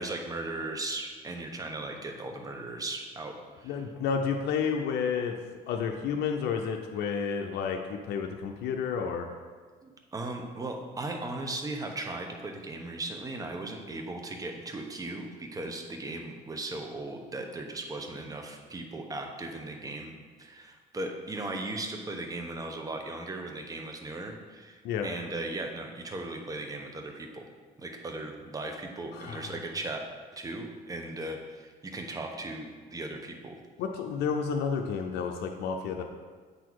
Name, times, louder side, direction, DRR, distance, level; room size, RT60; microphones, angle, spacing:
voice 1, 0.0-3.8 9.8-20.1 20.4-27.5 27.8-30.0 30.3-33.5, right 2 dB, 20° right, 3 dB, 0.9 m, -37 dB
voice 2, 3.6-5.4 5.7-9.3 24.8-25.1 29.1-29.5 33.8-36.0, left 6 dB, 80° left, 3 dB, 0.6 m, -31 dB
8.1 x 4.1 x 4.7 m, 1.5 s
cardioid pair, 110°, 17 cm